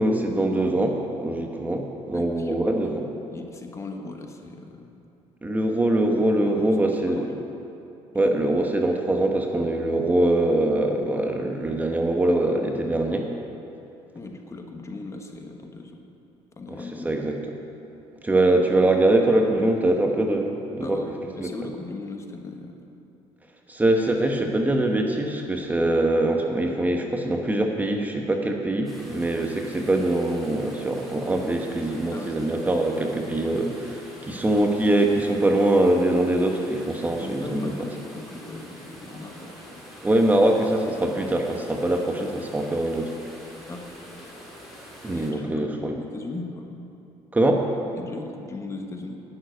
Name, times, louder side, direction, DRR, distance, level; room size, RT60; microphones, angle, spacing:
voice 1, 0.0-3.1 5.4-7.3 8.1-13.3 16.7-17.4 18.2-21.0 21.4-21.5 23.7-37.7 40.0-43.1 45.0-46.0 47.3-47.7, right 1 dB, 15° right, 2 dB, 1.1 m, -23 dB
voice 2, 2.1-2.6 3.3-4.9 6.4-7.5 8.1-8.2 14.1-16.0 16.6-17.1 20.8-22.8 32.1-32.4 37.2-39.9 43.7-43.9 45.1-46.7 48.0-49.2, left 3 dB, 25° left, 4 dB, 1.3 m, -38 dB
sound 1, 28.8-45.3, equal, ahead, 3.3 m, -45 dB
11.0 x 7.4 x 9.3 m, 2.7 s
cardioid pair, 115°, 11 cm